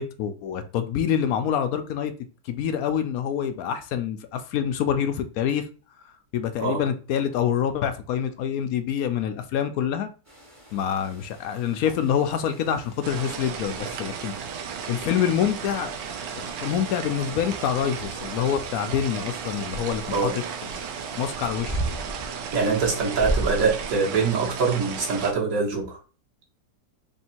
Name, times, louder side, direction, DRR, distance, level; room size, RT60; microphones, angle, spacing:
voice 1, 0.0-2.1 2.4-5.7 6.3-10.1 10.7-14.3 14.9-15.9 16.4-20.3 21.2-21.8, left 8 dB, 70° left, 9 dB, 0.9 m, -26 dB
sound 1, 10.2-24.0, right 1 dB, 10° right, 0.8 m, -38 dB
sound 2, 13.0-25.3, right 6 dB, 85° right, 1.3 m, -34 dB
voice 2, 22.5-26.0, right 4 dB, 55° right, 0 dB, 1.6 m, -24 dB
3.5 x 2.7 x 4.3 m, 0.35 s
omnidirectional pair, 1.9 m